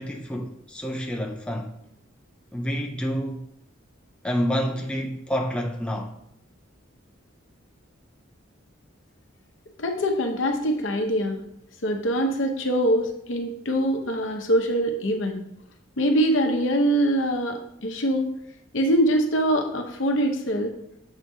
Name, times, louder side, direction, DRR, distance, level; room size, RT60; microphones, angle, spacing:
voice 1, 0.0-1.7 2.5-3.4 4.2-6.1, equal, 5° left, 0.4 m, -28 dB
voice 2, 9.8-11.4 11.8-15.4 16.0-18.3 18.7-20.7, equal, 65° left, 0.8 m, -23 dB
7.3 x 4.8 x 2.7 m
head